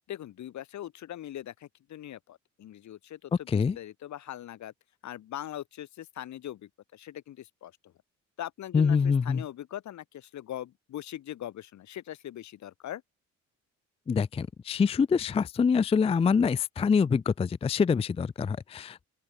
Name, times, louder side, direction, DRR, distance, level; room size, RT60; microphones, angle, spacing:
voice 1, 0.1-4.7 5.0-7.9 8.4-13.0, left 12 dB, 70° left, 1.6 m, -41 dB
voice 2, 8.7-9.4 14.1-19.1, left 6 dB, 20° left, 0.4 m, -25 dB
open air
cardioid pair, 90°, 30 cm